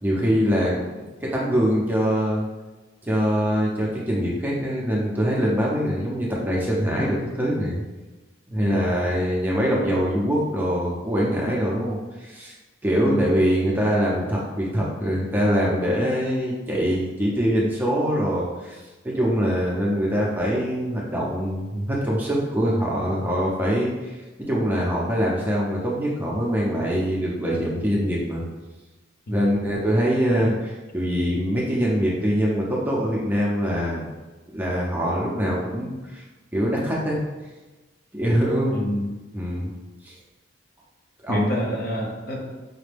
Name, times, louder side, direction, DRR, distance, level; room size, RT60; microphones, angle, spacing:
voice 1, 0.0-2.5 3.0-7.8 8.5-12.5 12.8-18.8 19.0-28.4 29.3-34.1 34.5-36.2 36.5-37.2 38.1-38.8 39.3-39.7 40.0-40.1 41.2-41.5, equal, 10° right, -4 dB, 0.6 m, -23 dB
voice 2, 8.6-8.9 9.7-9.9 13.0-13.4 29.3-29.7 30.4-30.6 38.7-39.2 41.3-42.5, equal, 50° left, 0 dB, 0.6 m, -28 dB
5.0 x 2.2 x 3.3 m, 1.2 s
head